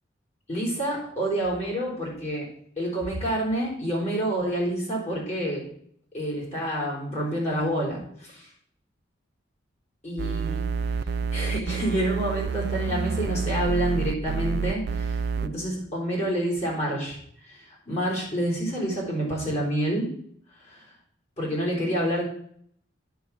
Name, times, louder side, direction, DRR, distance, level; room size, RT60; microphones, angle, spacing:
voice 1, 0.5-2.5 2.8-5.7 6.1-8.5 10.0-10.7 11.3-17.2 17.4-20.1 20.6-20.9 21.4-22.2, right 1 dB, 35° left, -2 dB, 3.8 m, -28 dB
sound 1, 10.2-15.5, right 5 dB, 60° right, 0.4 m, -28 dB
9.2 x 4.7 x 7.2 m, 0.66 s
head